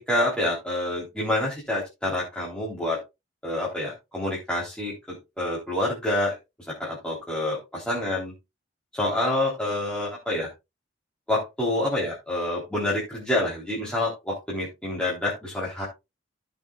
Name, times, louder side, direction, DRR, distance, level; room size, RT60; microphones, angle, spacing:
voice 1, 0.1-3.0 3.4-6.4 6.7-8.3 8.9-10.5 11.3-15.9, left 1 dB, 5° left, -6 dB, 3.6 m, -27 dB
16.0 x 6.6 x 2.4 m, 0.24 s
head